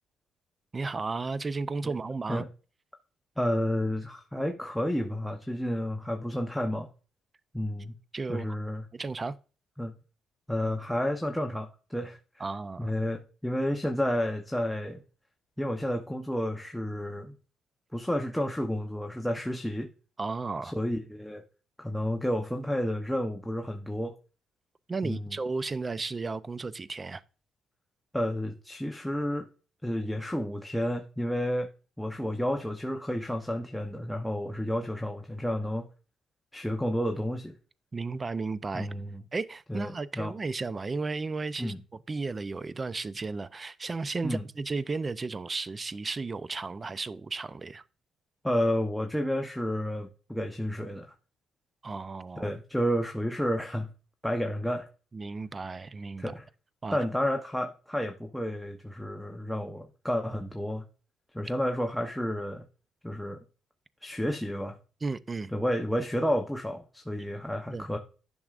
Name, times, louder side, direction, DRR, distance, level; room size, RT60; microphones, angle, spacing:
voice 1, 0.7-2.4 8.1-8.5 8.9-9.4 12.4-12.9 20.2-20.7 24.9-27.2 37.9-38.9 39.3-41.7 42.1-47.8 51.8-52.5 55.1-56.3 56.8-57.0 65.0-65.5 67.7-67.9, right 3 dB, 30° right, 0.5 m, -34 dB
voice 2, 3.4-6.9 7.5-7.9 8.3-8.8 9.8-9.9 10.5-12.4 12.8-15.0 15.6-17.3 17.9-19.9 20.6-21.4 21.8-24.1 25.0-25.4 28.1-29.5 29.8-31.7 32.0-35.9 36.5-37.5 38.7-39.2 39.7-40.3 41.6-41.8 44.2-44.4 48.4-51.1 52.4-53.9 54.2-54.9 56.2-56.4 56.9-60.8 61.3-62.6 63.0-63.4 64.0-64.8 65.5-68.0, equal, 5° left, 0.8 m, -31 dB
10.5 x 6.1 x 2.5 m
cardioid pair, 90°, 0 cm